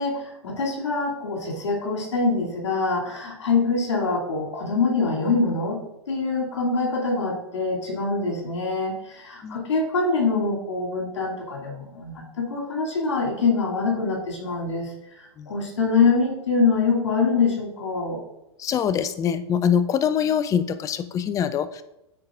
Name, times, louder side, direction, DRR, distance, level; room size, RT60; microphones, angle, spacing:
voice 1, 0.0-5.8 6.1-18.2, left 4 dB, 90° left, -2 dB, 2.7 m, -24 dB
voice 2, 18.6-21.8, left 8 dB, 20° left, 13 dB, 0.5 m, -24 dB
13.0 x 4.7 x 2.5 m, 0.87 s
hypercardioid pair, 120°, 15 cm